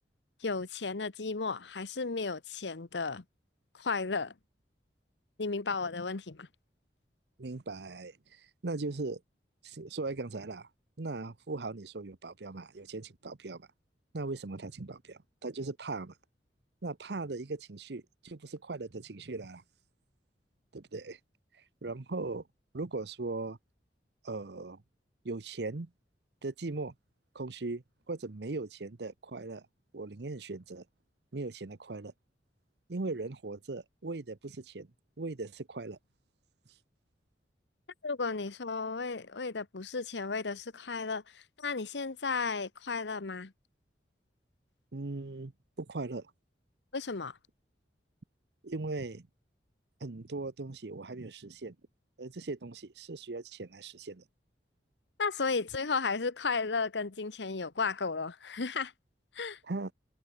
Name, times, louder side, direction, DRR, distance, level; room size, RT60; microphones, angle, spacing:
voice 1, 0.4-3.2 3.8-4.3 5.4-6.5 38.0-43.5 46.9-47.4 55.2-58.9 59.3-59.6, left 4 dB, 85° left, 1.0 m, -34 dB
voice 2, 7.4-9.2 9.6-10.7 11.0-13.7 14.1-16.1 16.8-19.6 20.7-21.2 21.5-22.4 22.7-23.6 24.2-24.8 25.2-25.9 26.4-26.9 27.3-29.6 29.9-30.8 31.3-32.1 32.9-34.9 35.2-36.0 44.9-45.5 45.8-46.3 48.6-49.3 50.0-51.8 52.2-54.2 59.7-59.9, right 3 dB, 70° right, 0.9 m, -39 dB
head